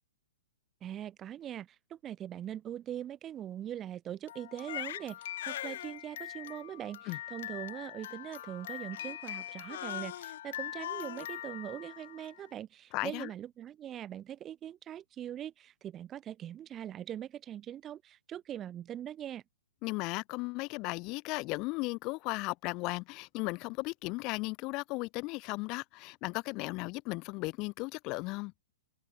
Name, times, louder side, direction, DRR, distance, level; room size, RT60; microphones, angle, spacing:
voice 1, 0.8-19.4, right 11 dB, 15° right, 0.6 m, -42 dB
Crying sobbing, 4.3-12.4, left 12 dB, 50° left, 0.9 m, -41 dB
voice 2, 12.9-13.3 19.8-28.5, left 25 dB, 25° left, 1.4 m, -36 dB
hypercardioid pair, 170°, 0 cm